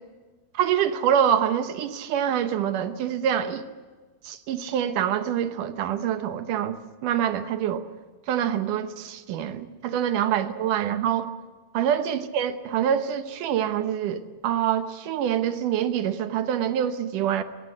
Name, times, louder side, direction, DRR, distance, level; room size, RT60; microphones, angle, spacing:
voice 1, 0.5-3.6 4.2-6.8 7.0-7.8 8.3-11.3 11.7-17.4, right 9 dB, 70° right, 10 dB, 2.2 m, -25 dB
23.0 x 20.0 x 7.7 m, 1.4 s
omnidirectional pair, 4.5 m